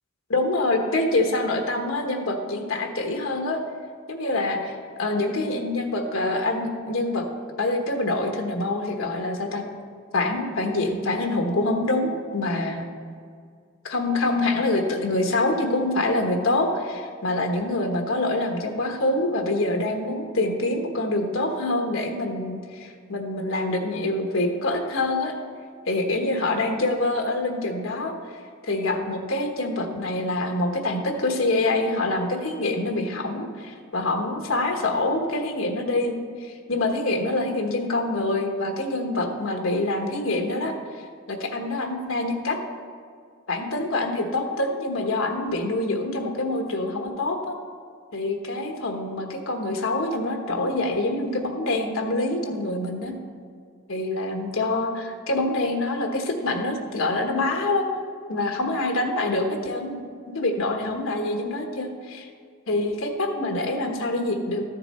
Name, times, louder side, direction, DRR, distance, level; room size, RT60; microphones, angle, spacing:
voice 1, 0.3-3.6 4.1-7.3 7.6-9.6 10.1-12.8 13.8-25.3 25.9-28.1 28.7-36.1 36.4-40.7 41.3-42.6 43.5-47.5 48.1-53.1 53.9-57.9 58.3-60.0 60.3-62.3 62.7-64.6, left 2 dB, 85° left, 3 dB, 1.2 m, -25 dB
13.0 x 6.8 x 4.3 m, 2.1 s
head